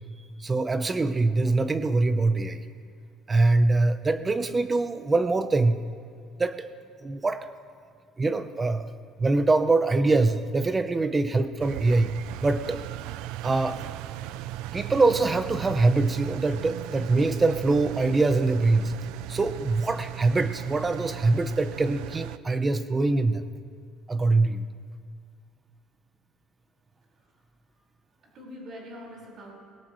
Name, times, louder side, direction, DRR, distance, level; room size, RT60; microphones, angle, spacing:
voice 1, 0.4-2.6 3.3-5.8 6.4-6.7 7.0-7.5 8.2-8.9 9.2-12.8 13.4-13.9 14.7-18.9 19.3-23.4 24.1-24.6, right 3 dB, 20° right, 11 dB, 0.8 m, -23 dB
Engine, 11.6-22.4, right 14 dB, 85° right, 0.4 m, -37 dB
voice 2, 28.2-29.5, equal, 50° right, -2 dB, 5.0 m, -44 dB
20.5 x 17.5 x 3.2 m, 2.2 s
cardioid pair, 130°, 0 cm